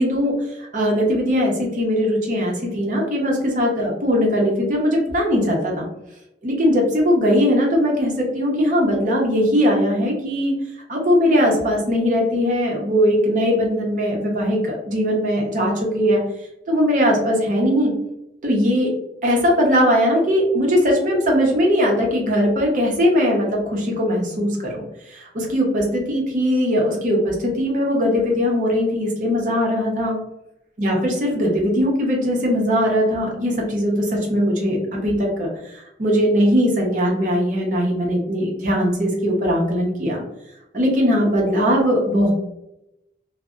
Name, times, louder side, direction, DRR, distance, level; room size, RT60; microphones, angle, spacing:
voice 1, 0.0-5.9 6.4-10.5 10.9-16.2 16.7-17.9 18.4-18.9 19.2-30.2 30.8-40.2 40.7-42.3, equal, 45° right, -1 dB, 0.6 m, -20 dB
2.6 x 2.0 x 2.3 m, 0.87 s
head